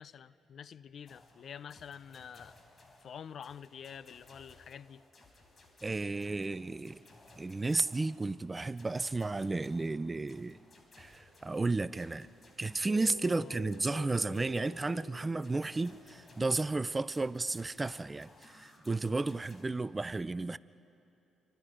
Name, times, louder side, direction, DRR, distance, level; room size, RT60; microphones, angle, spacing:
voice 1, 0.0-2.5 3.0-5.0 13.2-13.6, left 8 dB, 55° left, 0.5 m, -48 dB
sound 1, 1.1-19.6, left 2 dB, 35° left, 4.2 m, -60 dB
voice 2, 5.8-7.0 7.4-10.6 11.0-12.3 12.6-20.6, right 3 dB, 20° right, 0.4 m, -33 dB
sound 2, 12.8-16.4, left 6 dB, 90° left, 1.8 m, -50 dB
28.0 x 24.0 x 5.1 m
cardioid pair, 90°, 0 cm